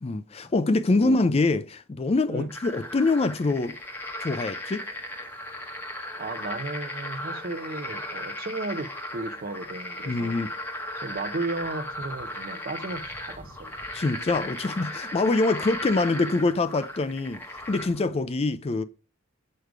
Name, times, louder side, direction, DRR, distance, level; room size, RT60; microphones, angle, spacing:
voice 1, 0.0-3.8 4.2-4.8 10.0-10.5 13.9-18.8, left 3 dB, 30° left, 0.4 m, -25 dB
sound 1, 2.5-18.1, left 1 dB, 10° left, 0.9 m, -36 dB
voice 2, 6.2-10.4 11.0-13.7, right 2 dB, 40° right, 0.7 m, -34 dB
6.5 x 5.1 x 4.7 m
head